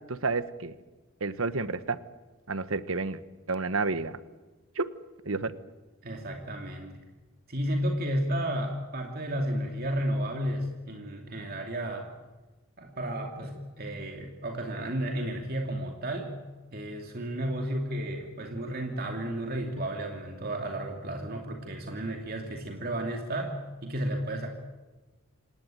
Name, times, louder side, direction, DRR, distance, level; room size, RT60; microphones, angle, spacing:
voice 1, 0.1-0.7 1.2-2.0 2.5-3.2 3.5-4.2 4.7-4.9 5.2-5.5, right 3 dB, 65° right, 13 dB, 1.3 m, -30 dB
voice 2, 6.0-7.1 7.5-12.1 12.8-16.3 16.7-23.6 23.8-24.5, right 1 dB, 45° right, 2 dB, 2.6 m, -32 dB
27.5 x 17.5 x 9.2 m, 1.2 s
head